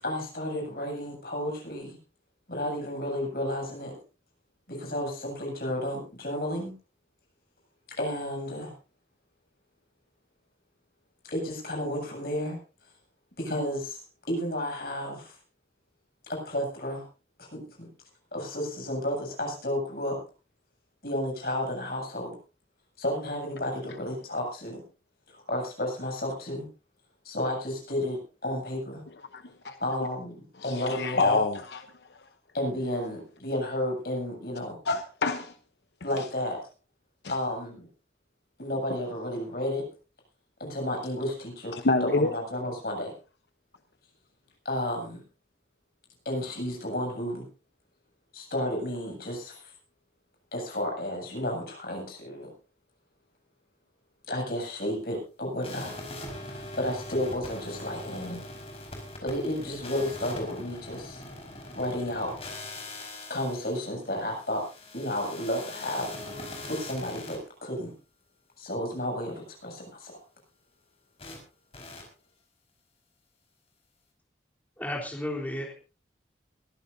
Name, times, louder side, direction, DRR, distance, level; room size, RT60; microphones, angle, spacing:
voice 1, 0.0-2.0 2.5-3.9 4.7-6.7 8.0-8.7 11.3-12.6 13.4-15.4 16.3-17.0 17.4-17.9 18.3-20.2 21.0-22.4 23.0-24.8 25.3-26.7 27.2-29.0 29.8-30.4 30.6-31.4 32.5-34.8 36.0-36.6 37.3-37.9 38.6-39.9 40.6-43.1 44.6-45.2 46.2-47.5 48.3-49.7 50.5-52.5 54.3-55.9 56.5-58.5 59.2-61.2 61.7-62.3 63.3-64.6 64.9-66.2 66.7-67.9 68.6-70.2, left 1 dB, 60° left, 7.8 m, -32 dB
voice 2, 29.3-29.8 30.6-31.8 34.9-35.5 36.2-36.3 37.2-37.3 41.7-42.3, left 3 dB, 75° left, 0.9 m, -27 dB
sound 1, 55.6-67.4 71.2-71.4 71.7-72.0, left 2 dB, 35° left, 5.0 m, -42 dB
voice 3, 74.8-75.7, left 1 dB, 10° left, 3.5 m, -33 dB
22.5 x 14.5 x 2.7 m
head